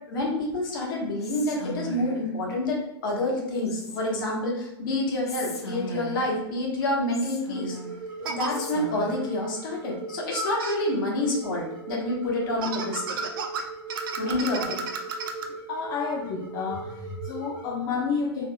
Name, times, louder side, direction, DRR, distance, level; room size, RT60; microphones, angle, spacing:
voice 1, 0.1-7.8 8.3-13.2 14.2-14.8, left 1 dB, 50° left, -2 dB, 1.1 m, -28 dB
Whispering, 1.2-2.3 3.7-4.3 5.3-6.4 7.1-8.0 8.5-9.3, left 2 dB, 75° left, 0.6 m, -38 dB
sound 1, 6.8-6.9 8.2-8.5 10.3-10.8 12.6-15.5, right 4 dB, 55° right, 0.4 m, -32 dB
sound 2, 7.5-17.7, right 4 dB, 10° right, 1.0 m, -39 dB
voice 2, 8.2-8.6 14.3-14.4 15.5-18.5, left 5 dB, 35° left, 0 dB, 0.4 m, -31 dB
3.6 x 2.9 x 2.2 m, 0.89 s
figure-of-eight pair, 100°, 14 cm